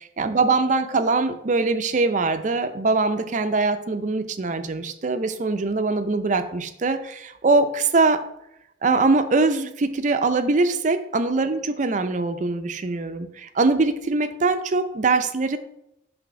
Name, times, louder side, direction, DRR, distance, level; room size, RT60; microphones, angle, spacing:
voice 1, 0.2-8.2 8.8-15.6, right 3 dB, 45° right, 9 dB, 0.5 m, -22 dB
6.1 x 3.4 x 5.7 m, 0.79 s
head